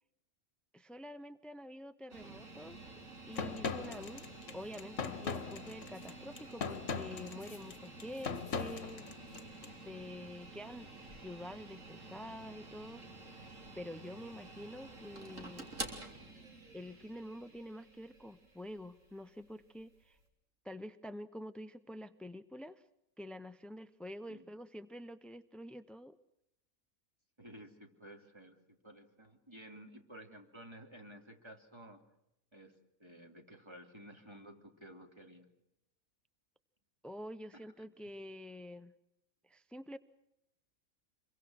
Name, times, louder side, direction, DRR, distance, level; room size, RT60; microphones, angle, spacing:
voice 1, 0.7-2.9 3.3-9.4 9.7-13.0 13.8-15.7 16.7-20.2 20.6-22.8 23.2-26.2 37.0-38.9 39.4-40.0, equal, ahead, 12 dB, 0.4 m, -47 dB
sound 1, 2.1-20.2, right 2 dB, 65° right, 4.0 m, -50 dB
sound 2, 3.4-9.7, left 5 dB, 60° left, 1.5 m, -40 dB
voice 2, 27.4-32.0 32.5-32.7 33.0-35.5, right 1 dB, 20° right, 4 dB, 3.0 m, -53 dB
27.0 x 23.0 x 6.4 m, 0.84 s
omnidirectional pair, 1.4 m